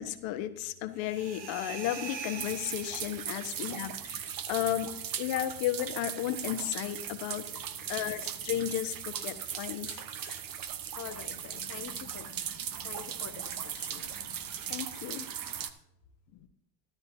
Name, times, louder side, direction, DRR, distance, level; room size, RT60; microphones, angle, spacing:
voice 1, 0.0-7.4 7.9-10.4 12.8-12.9 13.9-15.3, left 12 dB, 65° left, 10 dB, 1.3 m, -34 dB
sound 1, 1.0-3.7, right 5 dB, 85° right, 2.1 m, -43 dB
sound 2, 2.4-15.7, right 9 dB, 40° right, 1.1 m, -38 dB
voice 2, 10.9-12.3 12.8-14.1, left 8 dB, 35° left, 8 dB, 1.1 m, -46 dB
13.5 x 12.0 x 2.7 m, 0.80 s
hypercardioid pair, 75°, 50 cm